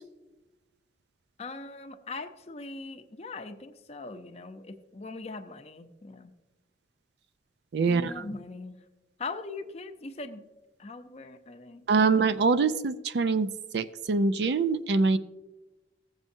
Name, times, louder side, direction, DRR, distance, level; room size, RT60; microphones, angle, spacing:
voice 1, 1.4-6.3 7.9-8.8 9.2-10.4 10.8-12.3, left 3 dB, 35° left, 7 dB, 0.6 m, -41 dB
voice 2, 7.7-8.2 11.9-13.5 13.7-15.2, right 4 dB, 65° right, 13 dB, 0.4 m, -24 dB
15.0 x 7.5 x 2.7 m, 1.1 s
head